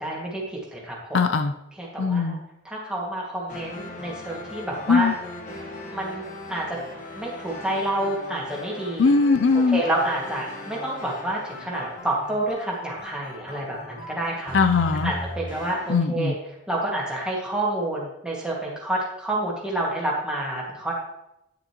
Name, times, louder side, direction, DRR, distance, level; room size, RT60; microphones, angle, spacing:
voice 1, 0.0-1.2 1.8-2.4 2.7-5.1 5.9-6.8 7.2-9.1 9.7-14.6 15.0-16.3 16.7-20.9, right 1 dB, 5° right, -4 dB, 1.8 m, -28 dB
voice 2, 1.1-1.5 2.0-2.4 4.9-5.1 9.0-9.8 14.5-15.1 15.9-16.3, left 4 dB, 65° left, 8 dB, 0.4 m, -20 dB
sound 1, 3.5-15.9, left 2 dB, 40° left, 1.2 m, -38 dB
9.6 x 6.6 x 2.9 m, 0.86 s
head